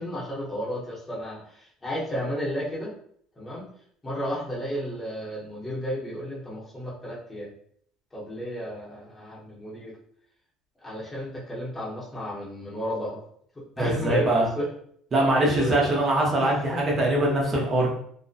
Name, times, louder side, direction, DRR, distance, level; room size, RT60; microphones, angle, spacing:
voice 1, 0.0-2.9 3.4-3.7 4.0-7.5 8.1-9.9 10.8-13.2 13.5-14.7 15.2-15.9 16.4-16.8, equal, 10° left, -6 dB, 0.8 m, -33 dB
voice 2, 13.8-14.5 15.1-17.9, right 1 dB, 25° right, -2 dB, 0.6 m, -22 dB
2.5 x 2.1 x 2.4 m, 0.64 s
cardioid pair, 155°, 0 cm